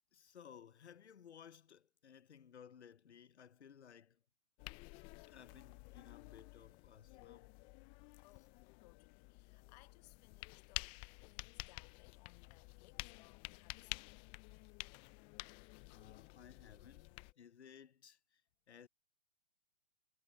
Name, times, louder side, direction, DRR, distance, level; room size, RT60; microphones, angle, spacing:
voice 1, 0.1-4.2 5.3-7.5 15.7-18.4 18.7-18.9, left 8 dB, 85° left, 0.9 m, -59 dB
sound 1, 4.6-17.3, left 25 dB, 15° left, 0.4 m, -51 dB
voice 2, 8.8-14.2, left 20 dB, 40° left, 1.3 m, -66 dB
hypercardioid pair, 130°, 33 cm